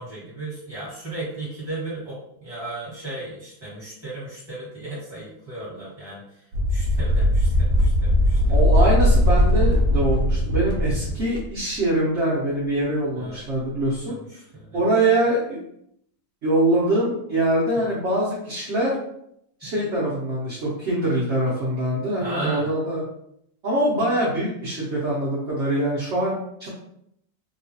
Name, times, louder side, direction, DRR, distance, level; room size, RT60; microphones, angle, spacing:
voice 1, 0.0-8.6 11.1-11.2 13.1-13.4 14.1-14.8 17.7-17.9 19.6-19.7 22.2-22.7, right 2 dB, 15° right, -8 dB, 1.3 m, -35 dB
sound 1, 6.5-11.5, equal, 70° right, 1.1 m, -19 dB
voice 2, 8.5-14.2 14.7-15.6 16.4-19.0 19.6-23.0 23.6-26.7, right 1 dB, 55° right, -7 dB, 0.8 m, -23 dB
3.0 x 2.3 x 2.7 m, 0.74 s
omnidirectional pair, 2.0 m